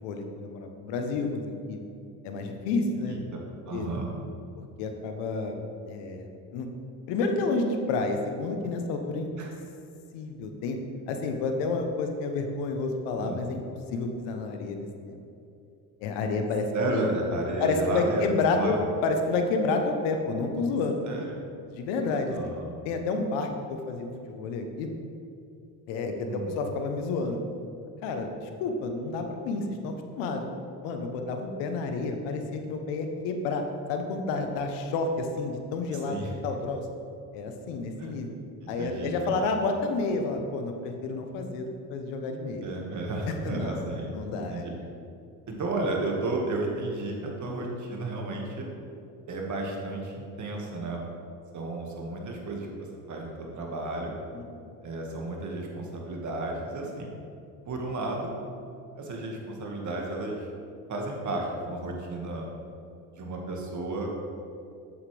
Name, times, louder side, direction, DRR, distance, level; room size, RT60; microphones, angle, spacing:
voice 1, 0.0-1.8 2.2-3.2 3.7-3.9 4.8-5.6 5.8-6.7 7.1-9.3 10.1-10.8 11.1-13.6 13.9-15.2 16.0-17.0 17.6-18.8 19.0-21.0 21.7-22.4 22.8-24.9 25.9-27.4 28.0-30.4 30.8-33.6 33.9-36.8 37.3-38.3 38.7-42.6 43.3-43.8 44.1-44.6 54.3-54.8, left 3 dB, 75° left, 5 dB, 1.1 m, -30 dB
voice 2, 3.1-3.4 3.7-4.1 9.4-9.5 13.2-13.4 16.7-18.8 21.1-21.4 22.3-22.7 26.3-26.5 36.1-36.3 38.0-38.1 38.6-39.4 42.6-44.7 45.5-48.7 49.3-51.0 51.5-54.1 54.8-57.1 57.7-58.3 59.0-60.5 60.9-62.5 63.1-64.1, right 2 dB, 40° right, 0 dB, 1.9 m, -33 dB
8.2 x 7.4 x 3.4 m, 2.6 s
supercardioid pair, 80°, 43 cm